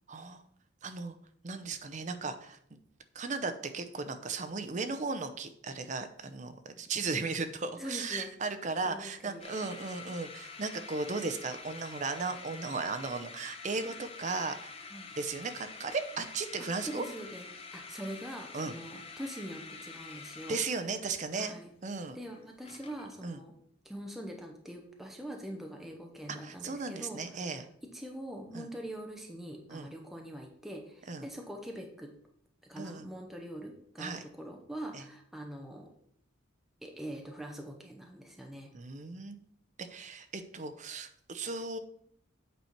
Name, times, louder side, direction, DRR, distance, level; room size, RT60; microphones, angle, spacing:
voice 1, 0.1-0.4 0.8-1.2 1.4-2.8 3.1-14.7 15.2-17.0 18.5-18.7 20.5-21.5 21.8-22.2 23.2-23.4 26.4-27.7 28.5-28.7 29.7-29.9 31.1-31.3 32.8-33.1 34.0-34.2 34.9-35.0 38.7-39.4 39.9-41.8, right 4 dB, 40° right, 9 dB, 0.6 m, -36 dB
voice 2, 7.8-8.3 8.8-9.8 14.9-15.1 16.8-17.5 17.7-20.6 21.3-21.7 22.1-23.5 23.8-32.1 32.6-35.9 36.8-38.7, equal, ahead, 1 dB, 0.8 m, -43 dB
sound 1, 9.4-23.2, left 4 dB, 30° left, 0.7 m, -47 dB
8.2 x 4.4 x 4.5 m, 0.67 s
head